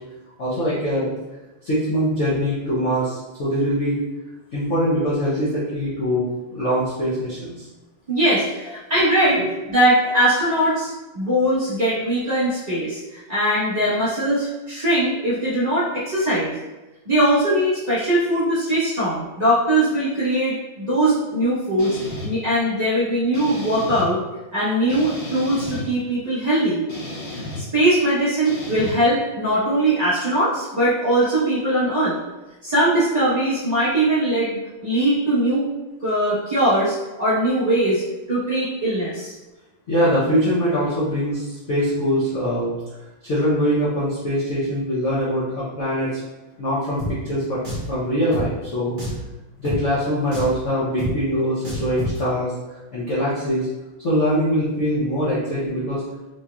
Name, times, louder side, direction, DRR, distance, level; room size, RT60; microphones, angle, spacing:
voice 1, 0.4-1.1 1.6-4.0 4.5-7.7 9.2-9.5 39.9-42.7 43.2-46.2 46.6-47.6 47.9-49.0 49.6-52.5 52.9-53.7 54.0-56.0, equal, 85° left, -10 dB, 0.6 m, -23 dB
voice 2, 8.1-9.4 9.7-10.9 11.1-16.5 17.0-22.0 22.2-24.2 24.5-26.8 27.6-32.1 32.6-35.7 36.0-38.0 38.3-39.3, right 1 dB, 30° right, -11 dB, 0.8 m, -20 dB
sound 1, 21.8-22.3 23.3-24.1 24.9-25.8 26.9-27.6 28.4-28.9, left 2 dB, 65° left, 2.1 m, -33 dB
Drum, 47.0-47.1 47.6-47.9 48.3-48.5 49.0-49.2 49.6-49.8 50.3-50.6 51.0-51.1 51.6-52.2, left 1 dB, 90° right, 0.4 m, -28 dB
4.4 x 2.7 x 2.3 m, 1.1 s
omnidirectional pair, 2.4 m